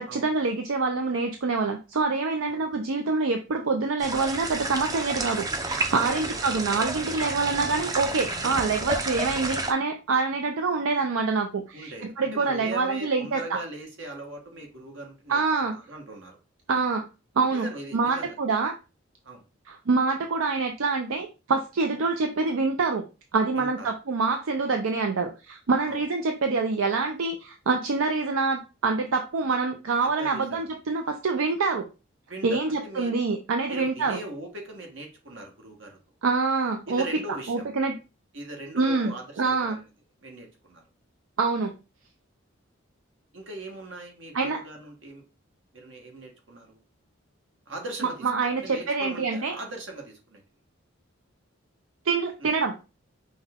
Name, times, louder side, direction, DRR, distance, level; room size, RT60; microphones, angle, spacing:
voice 1, 0.0-13.6 15.3-15.8 16.7-17.1 17.4-17.7 17.9-18.7 19.7-23.0 23.3-31.9 32.4-34.2 36.2-37.1 37.5-38.0 38.7-39.8 41.4-41.7 44.3-44.6 48.2-49.6 52.1-52.8, right 4 dB, 80° right, 4 dB, 0.5 m, -26 dB
sound 1, 4.0-9.7, right 3 dB, 20° right, 0.4 m, -31 dB
voice 2, 6.0-6.8 11.7-16.4 17.5-18.4 19.2-19.4 21.9-22.0 23.5-23.9 25.9-26.0 30.2-30.6 32.3-33.2 33.7-36.0 36.9-37.6 38.3-39.9 40.2-40.8 43.3-45.2 45.7-46.8 47.7-48.3 48.6-50.4 52.4-52.5, right 2 dB, 65° right, 2 dB, 1.3 m, -40 dB
5.4 x 2.2 x 3.5 m, 0.29 s
head